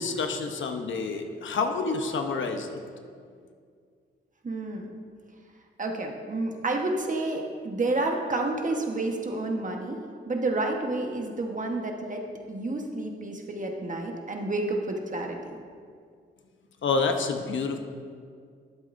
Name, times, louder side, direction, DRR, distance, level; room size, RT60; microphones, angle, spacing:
voice 1, 0.0-2.8 16.8-17.8, left 4 dB, 70° left, 5 dB, 0.9 m, -28 dB
voice 2, 4.4-4.9 5.8-10.0 10.2-15.6, right 2 dB, 40° right, 2 dB, 1.3 m, -30 dB
12.5 x 8.1 x 2.6 m, 2.1 s
cardioid pair, 60°, 21 cm